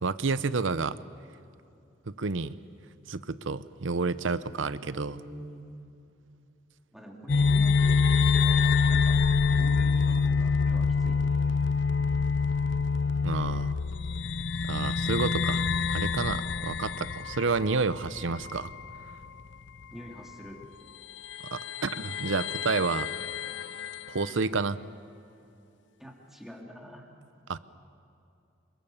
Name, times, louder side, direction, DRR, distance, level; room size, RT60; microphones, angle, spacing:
voice 1, 0.0-1.0 2.2-2.6 3.1-5.2 13.2-13.7 14.6-18.7 21.5-23.1 24.1-24.8 27.5-27.6, right 4 dB, 90° right, 15 dB, 0.8 m, -30 dB
voice 2, 4.9-5.7 6.9-9.2 9.6-11.2 11.5-11.6 19.9-20.6 24.1-24.3 26.0-27.1, equal, ahead, 0 dB, 3.0 m, -46 dB
sound 1, 7.3-19.2 19.5-19.6 20.6-20.7 21.2-24.3, left 5 dB, 65° left, 0.6 m, -26 dB
27.5 x 23.0 x 7.2 m, 2.6 s
head